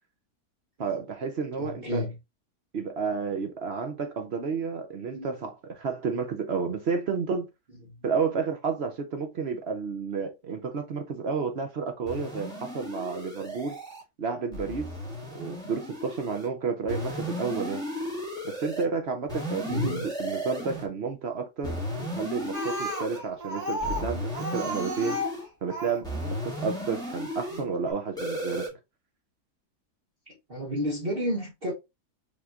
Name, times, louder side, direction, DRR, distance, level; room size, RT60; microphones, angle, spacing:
voice 1, 0.8-2.1 2.7-7.5 8.0-13.8 14.2-14.9 15.3-17.8 18.4-25.2 25.6-28.7, right 5 dB, 55° right, 0.7 m, -31 dB
voice 2, 1.6-2.1 5.1-5.3 7.9-8.0 19.6-20.1 27.5-27.7 30.3-31.7, equal, 35° right, 1.4 m, -31 dB
sound 1, 12.1-14.0 14.5-16.5 16.9-18.8 19.3-20.9 21.6-23.2 23.8-25.5 26.0-27.6 28.2-28.7, equal, 5° left, 1.5 m, -35 dB
Speech, 22.5-26.1 27.0-27.1 27.5-27.6 27.9-28.0, equal, 80° right, 2.3 m, -33 dB
5.2 x 3.0 x 2.5 m
omnidirectional pair, 1.7 m